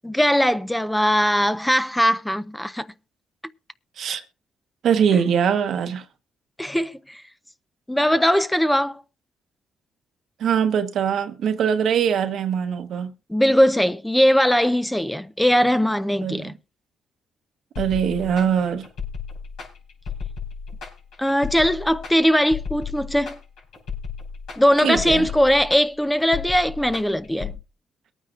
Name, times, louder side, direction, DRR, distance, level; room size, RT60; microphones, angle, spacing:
voice 1, 0.0-2.9 6.6-7.2 7.9-9.0 13.3-16.5 21.2-23.4 24.6-27.5, equal, 5° left, 0.5 m, -20 dB
voice 2, 4.8-6.0 10.4-13.1 16.2-16.5 17.8-18.9 24.8-25.3, right 8 dB, 70° right, 1.0 m, -22 dB
sound 1, 17.8-27.6, left 6 dB, 80° left, 5.3 m, -34 dB
22.5 x 9.2 x 2.4 m
cardioid pair, 90°, 0 cm